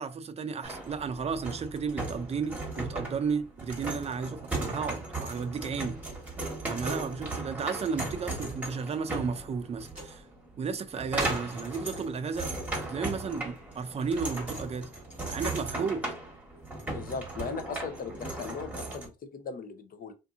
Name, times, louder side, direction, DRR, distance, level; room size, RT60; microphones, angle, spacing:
voice 1, 0.0-6.0 6.6-10.2 10.6-12.5 12.8-14.9 15.2-16.1, right 5 dB, 30° right, 0.4 m, -33 dB
sound 1, 0.6-19.1, right 2 dB, 10° right, 1.2 m, -37 dB
voice 2, 16.9-20.1, left 5 dB, 45° left, 0.6 m, -38 dB
2.6 x 2.6 x 2.4 m
cardioid pair, 90°, 20 cm